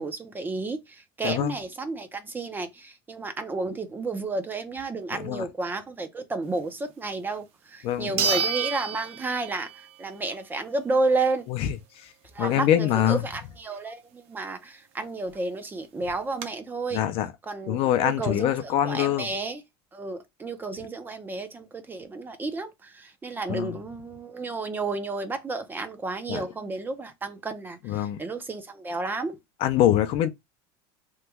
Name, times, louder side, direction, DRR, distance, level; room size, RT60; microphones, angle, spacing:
voice 1, 0.0-9.7 10.0-11.4 12.3-17.0 17.4-19.6 19.9-29.4, right 3 dB, 15° right, 0.5 m, -31 dB
voice 2, 1.2-1.5 5.1-5.5 7.8-8.4 11.5-12.1 12.4-13.2 16.9-17.3 17.7-19.3 23.5-23.8 26.3-26.4 27.8-28.2 29.6-30.3, left 11 dB, 45° left, 0.5 m, -24 dB
sound 1, 7.3-7.4 8.2-9.9 10.3-10.4 15.0-15.1 15.3-15.4 16.0-16.5, right 6 dB, 45° right, 0.7 m, -29 dB
3.0 x 2.2 x 3.3 m
supercardioid pair, 145°, 14 cm